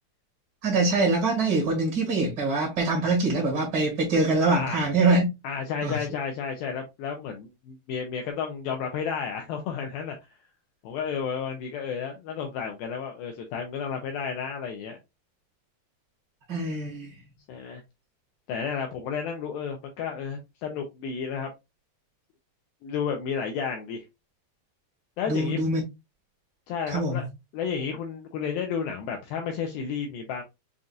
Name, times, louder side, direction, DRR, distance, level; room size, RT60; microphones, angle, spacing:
voice 1, 0.6-5.3 5.8-6.0 16.5-17.1 25.3-25.8 26.9-27.2, right 3 dB, 50° right, 1.2 m, -24 dB
voice 2, 4.5-4.9 5.4-10.2 10.8-15.0 17.5-17.8 18.5-21.5 22.8-24.0 25.2-25.6 26.7-27.2 27.5-30.4, left 6 dB, 85° left, 2.2 m, -32 dB
7.0 x 2.5 x 2.3 m
omnidirectional pair, 4.8 m